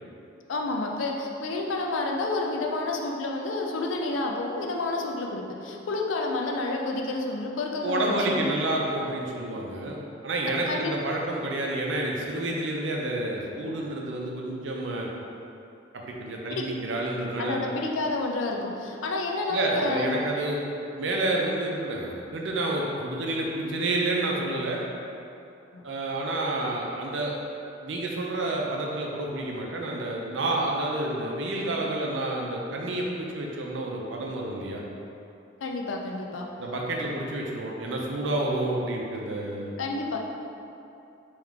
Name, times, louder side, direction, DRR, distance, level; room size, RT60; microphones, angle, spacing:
voice 1, 0.5-8.6 10.7-10.9 16.5-16.6 17.4-20.2 25.7-25.9 35.6-36.5 39.8-40.2, left 2 dB, 90° left, 0 dB, 0.5 m, -30 dB
voice 2, 7.8-10.0 10.2-15.1 15.9-17.6 19.5-20.6 20.9-24.8 25.8-27.4 27.8-34.8 36.6-39.8, right 2 dB, 70° right, -1 dB, 0.6 m, -29 dB
3.6 x 3.0 x 3.5 m, 2.7 s
head